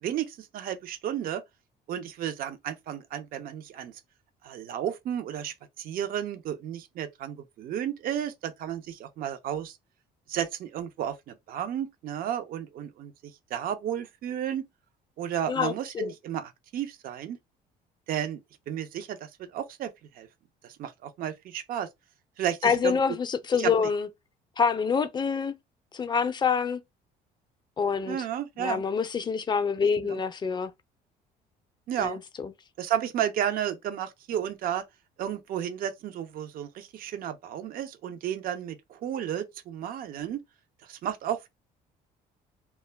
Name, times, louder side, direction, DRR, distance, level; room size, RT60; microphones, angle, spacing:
voice 1, 0.0-1.4 1.9-4.0 4.4-9.8 10.3-13.1 13.5-14.6 15.2-17.4 18.1-18.4 18.7-20.3 20.6-21.9 22.4-23.0 23.6-23.9 28.1-28.8 30.0-30.2 31.9-32.2 32.8-34.8 35.2-40.4 40.8-41.5, right 10 dB, 60° right, 0.5 m, -33 dB
voice 2, 15.5-16.1 22.6-24.1 24.6-25.5 25.9-26.8 27.8-28.2 28.6-30.7 32.0-32.5, left 6 dB, 25° left, 0.4 m, -26 dB
2.2 x 2.1 x 3.2 m
cardioid pair, 110°, 17 cm